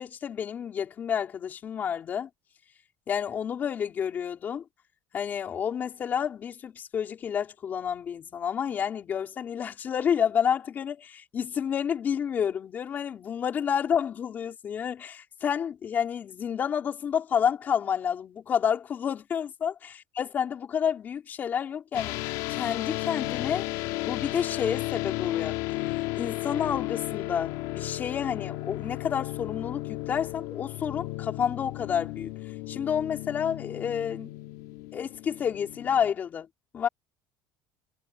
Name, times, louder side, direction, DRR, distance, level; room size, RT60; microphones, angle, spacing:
voice 1, 0.0-2.3 3.1-4.6 5.1-23.7 24.0-25.6 26.2-32.3 32.7-34.3 34.9-36.5 36.7-36.9, left 8 dB, 25° left, 4.9 m, -29 dB
sound 1, 21.9-36.1, left 20 dB, 70° left, 2.8 m, -34 dB
cardioid pair, 170°, 7 cm